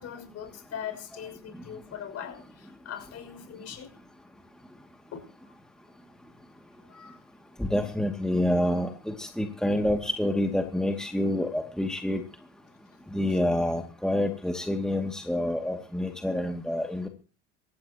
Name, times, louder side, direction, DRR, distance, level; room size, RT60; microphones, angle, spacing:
voice 1, 0.0-3.9 5.1-5.2 6.9-7.2, left 8 dB, 45° left, 6 dB, 6.5 m, -40 dB
voice 2, 7.6-12.2 13.1-17.1, left 1 dB, ahead, 3 dB, 2.5 m, -27 dB
26.5 x 14.5 x 3.0 m, 0.36 s
hypercardioid pair, 75°, 35 cm